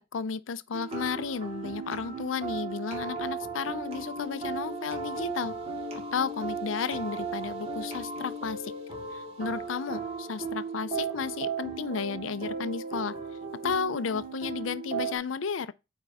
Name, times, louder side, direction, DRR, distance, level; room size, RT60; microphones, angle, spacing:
voice 1, 0.1-5.5 6.1-8.7 9.1-13.1 13.6-15.7, left 6 dB, 85° left, 0.5 m, -33 dB
sound 1, 0.7-15.2, right 4 dB, 30° right, 2.3 m, -36 dB
9.0 x 4.5 x 3.5 m
head